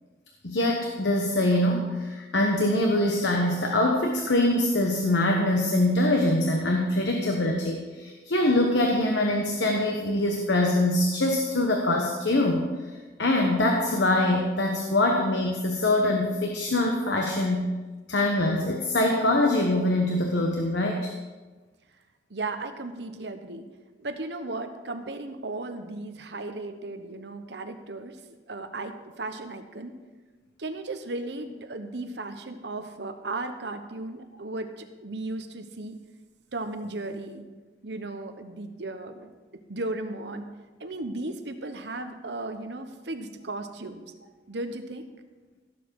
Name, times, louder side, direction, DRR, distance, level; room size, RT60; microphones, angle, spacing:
voice 1, 0.4-12.9 13.2-17.7 18.1-21.1, left 1 dB, 80° left, 1 dB, 1.2 m, -24 dB
voice 2, 22.3-23.6 24.0-28.2 28.5-29.9 30.6-36.0 36.5-37.4 37.8-39.3 39.7-40.5 40.8-44.0 44.5-45.0, right 2 dB, 70° right, 7 dB, 1.1 m, -35 dB
16.0 x 7.4 x 4.8 m, 1.3 s
head